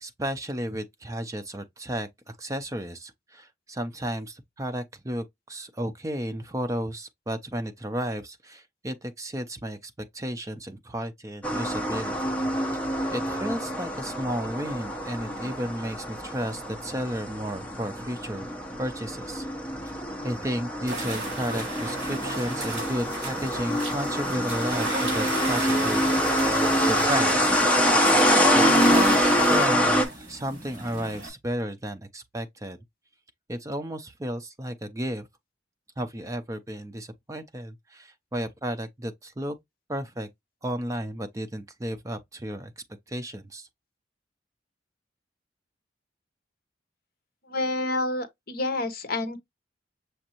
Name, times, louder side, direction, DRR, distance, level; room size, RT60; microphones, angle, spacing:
voice 1, 0.0-12.3 13.1-18.5 18.8-19.5 20.2-26.1 26.4-27.5 28.5-32.8 33.5-35.3 36.0-39.6 39.9-40.3 40.6-42.7 43.1-43.7, equal, 15° right, 0.5 m, -33 dB
sound 1, 11.4-30.0, equal, 10° left, 0.8 m, -25 dB
sound 2, 20.9-31.3, right 1 dB, 40° right, 3.8 m, -34 dB
voice 2, 47.5-49.4, left 2 dB, 55° left, 0.8 m, -28 dB
6.4 x 2.5 x 2.9 m
head